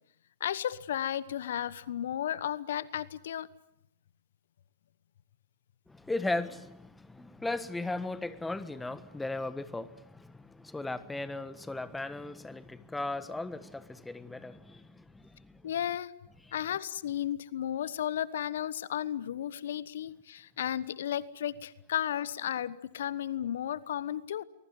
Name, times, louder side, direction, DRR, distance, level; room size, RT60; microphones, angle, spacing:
voice 1, 0.4-3.5 15.6-16.1 16.5-24.4, left 10 dB, 65° left, 1.1 m, -34 dB
voice 2, 5.9-15.6, left 2 dB, 5° left, 1.3 m, -37 dB
24.0 x 21.5 x 9.5 m
hypercardioid pair, 115°, 0 cm